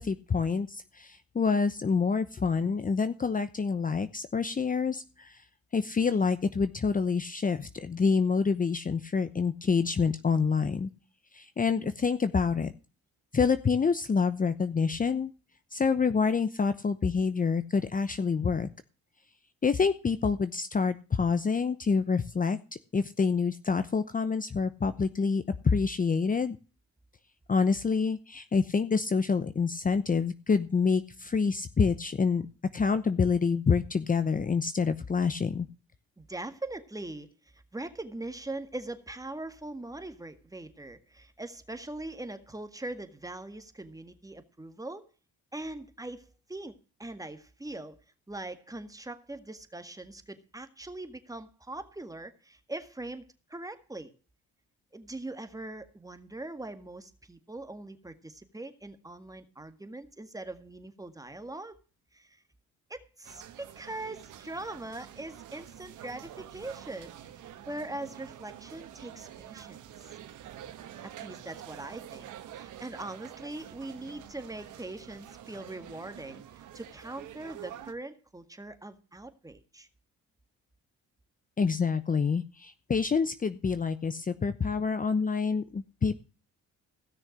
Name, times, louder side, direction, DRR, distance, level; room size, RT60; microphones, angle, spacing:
voice 1, 0.0-5.4 5.7-10.9 11.3-12.7 13.3-15.3 15.7-18.7 19.6-22.6 22.9-26.6 27.5-32.4 32.7-35.7 81.6-86.1, left 5 dB, 25° left, 12 dB, 0.9 m, -27 dB
voice 2, 36.2-37.3 37.5-45.1 45.5-48.0 48.3-54.1 54.9-61.8 62.1-62.4 62.9-67.2 67.5-69.8 71.0-72.3 72.5-79.9, right 2 dB, 10° right, 9 dB, 1.8 m, -41 dB
sound 1, 63.2-77.9, right 11 dB, 80° right, 1.6 m, -47 dB
16.5 x 6.4 x 6.4 m, 0.35 s
cardioid pair, 90°, 30 cm